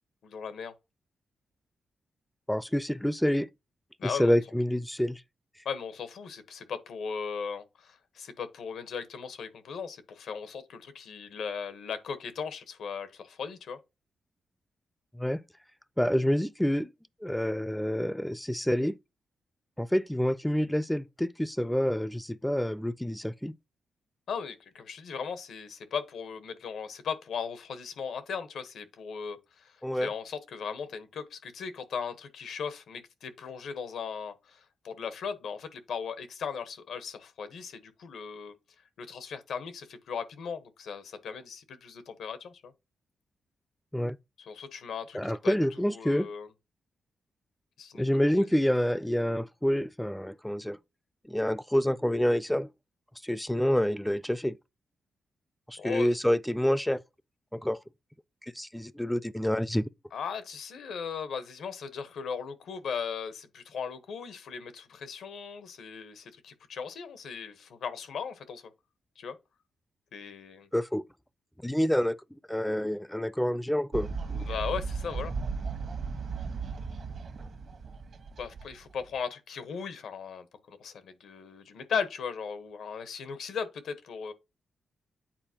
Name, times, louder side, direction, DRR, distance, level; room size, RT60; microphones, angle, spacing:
voice 1, 0.2-0.7 4.0-4.3 5.6-13.8 24.3-38.5 39.0-42.7 44.4-46.5 47.8-48.0 48.3-48.5 55.8-56.1 60.1-68.6 69.2-69.4 70.1-70.7 74.4-75.3 78.4-84.3, left 6 dB, 80° left, 1.1 m, -37 dB
voice 2, 2.5-3.5 4.0-5.2 15.1-15.4 16.0-16.9 17.2-19.0 19.8-23.5 29.8-30.1 43.9-44.2 45.1-46.3 47.9-50.8 51.3-52.7 53.2-54.6 55.7-57.0 57.5-57.8 58.6-59.8 70.7-71.0 71.6-72.1 72.5-74.1, equal, 5° left, 0.5 m, -27 dB
Fowl, 73.9-79.2, right 4 dB, 60° right, 1.2 m, -36 dB
8.9 x 4.3 x 2.9 m
cardioid pair, 85°, 0 cm